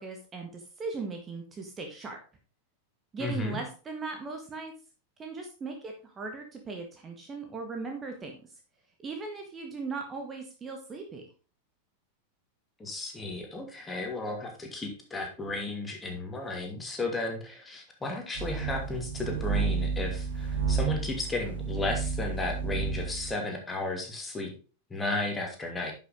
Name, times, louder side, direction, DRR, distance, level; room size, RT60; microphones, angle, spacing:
voice 1, 0.0-2.2 3.1-4.7 5.2-8.3 9.0-11.2, right 4 dB, 20° right, 3 dB, 1.6 m, -38 dB
voice 2, 3.2-3.6 12.8-24.5 24.9-25.9, left 2 dB, 15° left, 2 dB, 2.6 m, -34 dB
sound 1, 18.3-23.3, right 5 dB, 60° right, 2.9 m, -31 dB
11.0 x 6.1 x 3.7 m, 0.35 s
figure-of-eight pair, 90°, 0 cm